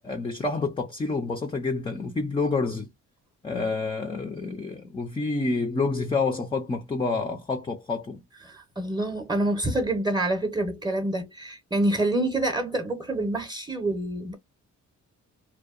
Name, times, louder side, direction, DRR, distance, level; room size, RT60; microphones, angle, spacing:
voice 1, 0.0-2.9 3.4-8.2, left 3 dB, 15° left, 0.4 m, -28 dB
voice 2, 8.4-14.3, right 1 dB, 15° right, 0.7 m, -27 dB
2.7 x 2.1 x 2.3 m
cardioid pair, 120°, 31 cm